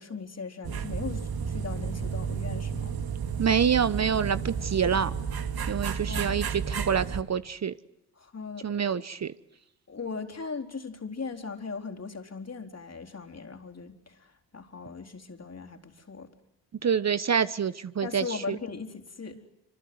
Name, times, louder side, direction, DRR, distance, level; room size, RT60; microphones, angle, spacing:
voice 1, 0.0-2.9 6.1-6.4 8.2-8.8 9.9-16.3 18.0-19.4, left 4 dB, 35° left, 3 dB, 4.1 m, -39 dB
sound 1, 0.6-7.2, right 6 dB, 50° right, 2.6 m, -32 dB
voice 2, 3.4-5.1 5.7-7.7 8.6-9.3 16.8-18.6, right 7 dB, 35° right, 14 dB, 1.1 m, -26 dB
28.5 x 26.0 x 8.0 m, 0.88 s
hypercardioid pair, 45°, 45 cm